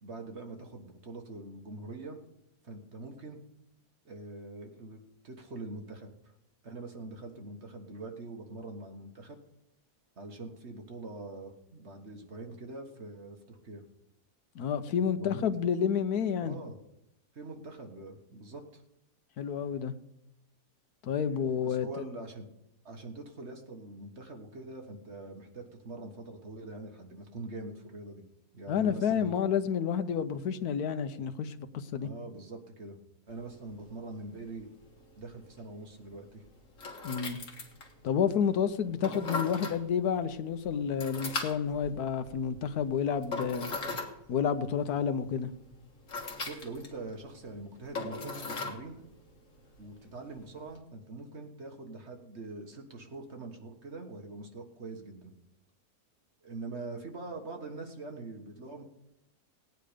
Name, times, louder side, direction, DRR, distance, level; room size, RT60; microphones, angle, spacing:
voice 1, 0.0-2.2 2.6-3.4 4.0-6.3 6.6-9.4 10.2-13.8 15.1-15.5 16.4-16.8 17.3-18.8 21.2-22.5 22.8-28.2 28.5-29.3 32.0-33.0 33.3-34.7 35.2-36.4 46.4-49.1 49.8-55.4 56.4-58.8, right 2 dB, 45° right, 3 dB, 1.7 m, -44 dB
voice 2, 14.5-16.6 19.4-19.9 21.0-21.9 28.7-32.1 37.0-37.4 38.0-43.7 44.3-45.5, left 7 dB, 70° left, 11 dB, 1.3 m, -30 dB
sound 1, 33.3-50.8, left 3 dB, 50° left, 2.1 m, -42 dB
17.5 x 9.3 x 5.0 m, 0.84 s
omnidirectional pair, 1.7 m